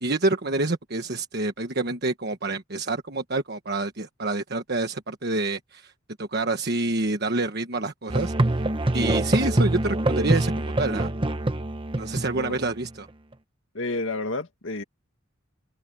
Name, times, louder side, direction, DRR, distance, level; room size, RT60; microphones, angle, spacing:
voice 1, 0.0-5.9 6.2-8.3 8.9-11.1 11.9-13.1, right 2 dB, 50° right, 1.3 m, -27 dB
Musical instrument, 8.1-12.9, right 1 dB, 25° right, 1.0 m, -25 dB
voice 2, 13.7-14.8, left 2 dB, 65° left, 2.2 m, -30 dB
head